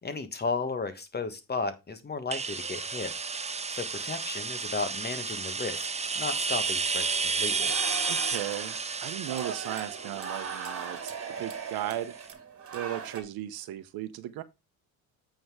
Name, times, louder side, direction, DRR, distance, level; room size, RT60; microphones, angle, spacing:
voice 1, 0.0-3.1 3.7-5.9 6.1-7.7, left 4 dB, 25° left, 1.4 m, -34 dB
sound 1, 2.3-11.9, right 4 dB, 15° right, 0.7 m, -32 dB
sound 2, 7.6-13.2, right 6 dB, 35° right, 1.9 m, -38 dB
voice 2, 8.0-11.1 11.4-12.1 12.7-14.4, right 13 dB, 65° right, 1.0 m, -36 dB
8.6 x 3.9 x 4.8 m
supercardioid pair, 70°, 39 cm